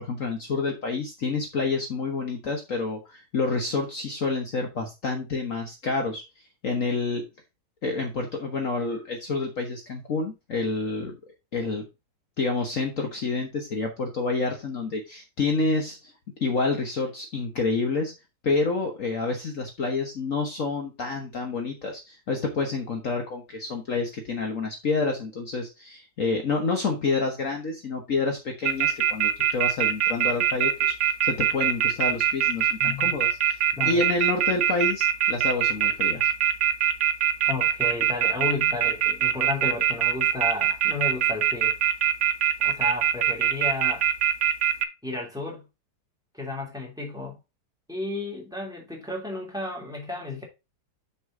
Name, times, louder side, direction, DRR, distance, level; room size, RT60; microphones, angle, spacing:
voice 1, 0.0-6.2 6.6-7.2 7.8-11.1 11.5-11.8 12.4-16.1 16.4-18.1 18.4-30.9 31.2-36.3, left 3 dB, 50° left, 1.6 m, -28 dB
sound 1, 28.6-44.8, right 10 dB, 60° right, 1.2 m, -22 dB
voice 2, 32.8-33.2 33.8-34.0 37.4-41.7 42.6-44.1 45.0-45.7 46.3-47.4 47.9-50.4, left 2 dB, ahead, 2.7 m, -33 dB
6.4 x 6.2 x 3.7 m
omnidirectional pair, 1.8 m